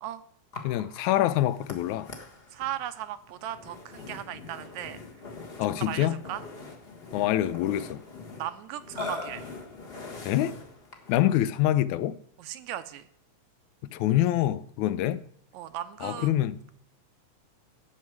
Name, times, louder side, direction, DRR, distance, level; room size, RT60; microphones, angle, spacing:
Burping eructation, 0.5-11.2, left 3 dB, 40° left, 0.8 m, -43 dB
voice 1, 0.6-2.1 5.6-6.2 7.1-8.0 10.2-10.5 11.1-12.2 13.9-15.2 16.0-16.6, left 13 dB, 80° left, 2.0 m, -25 dB
voice 2, 2.5-5.0 5.6-6.4 8.4-9.5 12.4-13.0 15.5-16.3, right 12 dB, 80° right, 1.9 m, -37 dB
17.0 x 6.5 x 4.6 m
omnidirectional pair, 3.4 m